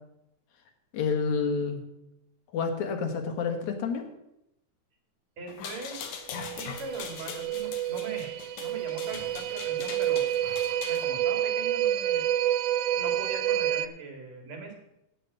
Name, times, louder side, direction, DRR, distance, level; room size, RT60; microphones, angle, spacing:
voice 1, 0.9-1.8 2.5-4.1, left 5 dB, 75° left, 5 dB, 2.7 m, -29 dB
voice 2, 5.4-6.1 6.4-10.2 10.8-12.3 13.0-14.7, right 3 dB, 65° right, 2 dB, 3.3 m, -41 dB
sound 1, 5.5-11.1, left 7 dB, 90° left, 2.6 m, -41 dB
sound 2, 6.3-13.9, right 12 dB, 90° right, 1.4 m, -29 dB
8.9 x 8.0 x 7.9 m, 0.83 s
omnidirectional pair, 3.4 m